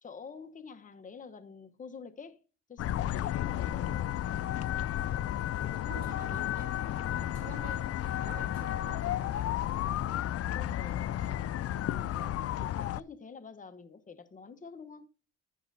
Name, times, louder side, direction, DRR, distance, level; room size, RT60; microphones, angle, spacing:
voice 1, 0.0-2.4 2.7-4.2 10.1-11.5 11.9-15.1, left 5 dB, 25° left, 1.0 m, -48 dB
sound 1, 2.8-13.0, left 12 dB, 50° left, 0.4 m, -32 dB
voice 2, 5.6-9.5, right 3 dB, 30° right, 4.6 m, -48 dB
10.5 x 8.7 x 2.7 m
cardioid pair, 90°, 30 cm